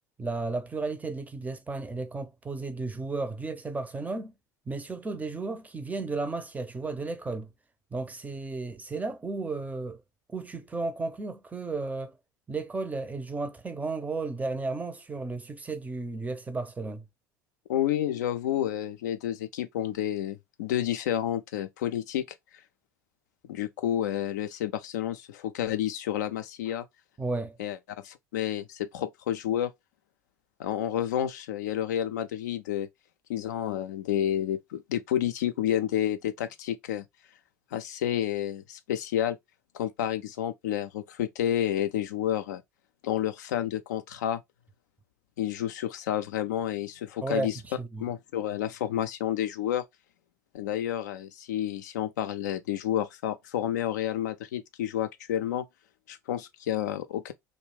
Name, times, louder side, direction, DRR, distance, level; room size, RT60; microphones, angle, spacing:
voice 1, 0.2-4.3 4.7-7.5 7.9-10.0 10.3-12.1 12.5-17.0 27.2-27.6 47.2-48.0, right 3 dB, 15° right, 0.5 m, -33 dB
voice 2, 17.7-22.4 23.5-26.9 27.6-27.8 28.0-29.7 30.6-32.9 33.3-37.1 37.7-39.4 39.7-42.6 43.0-44.4 45.4-47.6 48.0-49.8 50.5-55.7 56.1-57.3, left 11 dB, 70° left, 0.3 m, -30 dB
2.3 x 2.1 x 3.2 m
figure-of-eight pair, 65°, 10 cm